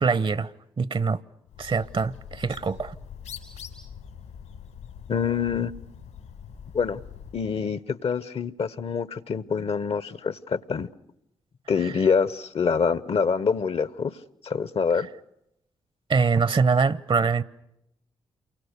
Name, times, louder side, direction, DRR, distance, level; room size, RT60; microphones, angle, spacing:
voice 1, 0.0-1.2 1.6-2.9 11.8-11.9 15.0-15.1 16.1-17.4, right 5 dB, 45° right, 1.0 m, -24 dB
Bird, 1.5-7.4, left 7 dB, 90° left, 5.0 m, -43 dB
voice 2, 5.1-5.7 6.7-7.0 7.3-10.9 11.7-14.1 14.4-15.1, left 5 dB, 55° left, 1.0 m, -25 dB
28.0 x 24.0 x 6.7 m
hypercardioid pair, 40°, 12 cm